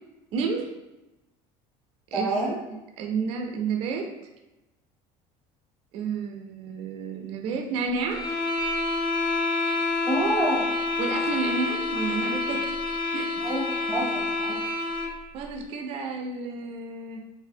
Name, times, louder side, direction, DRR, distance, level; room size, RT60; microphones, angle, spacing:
voice 1, 0.3-0.7 2.1-2.4 2.7-4.1 5.9-8.2 11.0-12.7 13.1-13.4 14.5-14.6 15.3-17.2, right 5 dB, 45° right, 3 dB, 0.4 m, -31 dB
voice 2, 2.1-2.6 10.0-10.6 13.4-14.2 14.5-14.6, right 1 dB, 5° left, -6 dB, 0.9 m, -27 dB
sound 1, 8.1-15.2, left 3 dB, 30° left, 0.6 m, -28 dB
4.1 x 2.5 x 2.6 m, 1.0 s
cardioid pair, 175°, 14 cm